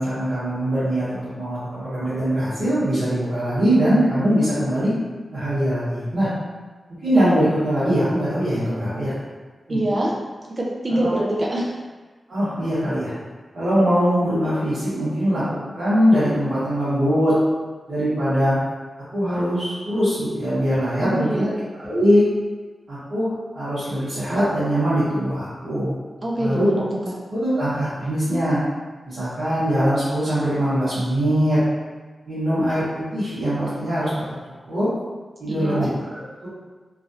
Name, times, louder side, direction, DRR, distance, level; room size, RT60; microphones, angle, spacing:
voice 1, 0.0-4.9 5.3-6.3 7.0-9.1 9.7-9.8 10.9-11.0 12.3-13.1 13.5-15.4 15.7-17.4 17.9-18.6 19.1-21.5 21.8-22.2 22.9-25.9 26.4-26.7 27.3-28.6 29.0-31.6 32.3-34.1 34.7-34.9 35.4-36.5, equal, 60° right, -13 dB, 1.4 m, -22 dB
voice 2, 9.7-10.1 10.6-11.7 21.0-21.6 26.2-26.9 35.5-35.9, right 1 dB, 30° right, -4 dB, 0.4 m, -24 dB
3.1 x 2.5 x 2.7 m, 1.3 s
wide cardioid pair, 160°, 0 cm